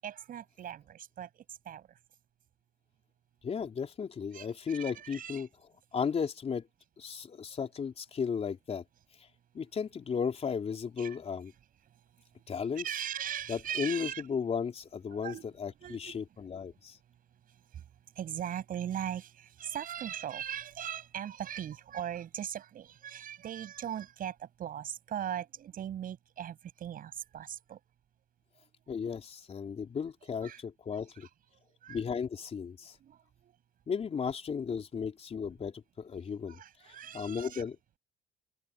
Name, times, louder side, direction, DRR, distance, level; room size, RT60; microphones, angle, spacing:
voice 1, 0.0-1.9 4.3-5.5 11.0-11.2 12.6-14.2 15.1-15.4 15.8-16.2 17.5-17.8 18.1-27.8 30.4-30.6 31.2-31.3 31.8-32.0 32.8-33.5 36.5-37.6, right 10 dB, 55° right, 7.8 m, -39 dB
voice 2, 3.4-5.5 5.9-6.7 7.0-8.8 9.5-11.5 12.5-12.9 13.5-17.0 28.9-31.3 31.9-33.0 33.9-36.6 36.9-38.0, left 6 dB, 40° left, 3.9 m, -35 dB
cardioid pair, 110°, 17 cm